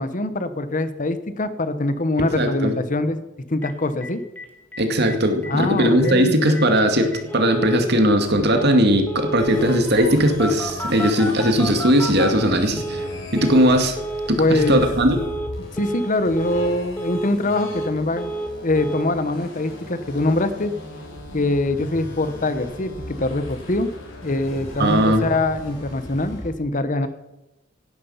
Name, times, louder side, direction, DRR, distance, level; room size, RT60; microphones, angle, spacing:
voice 1, 0.0-4.2 5.5-6.4 14.4-14.8 15.7-18.3 18.6-20.7 21.3-23.9 24.2-27.1, left 2 dB, 40° left, 12 dB, 1.0 m, -23 dB
voice 2, 2.4-2.7 4.8-13.0 13.3-14.0 14.3-15.2 24.8-25.3, equal, 55° right, 5 dB, 2.2 m, -18 dB
Telephone, 3.6-3.7 4.0-4.1 4.4-4.5 4.7-5.2 5.4-5.5 5.8-6.1 6.5-6.6 7.1-7.8 8.6-8.8 9.1-9.8 10.4-13.1 13.4-13.7 14.0-14.3 14.6-14.9 15.2-15.5 15.8-16.1 16.4-16.7 17.0-17.9 18.2-18.5 18.8-19.0, right 1 dB, 10° left, 2.3 m, -30 dB
sound 1, 9.4-26.5, left 1 dB, 70° left, 5.4 m, -38 dB
17.0 x 11.0 x 5.7 m, 0.97 s
head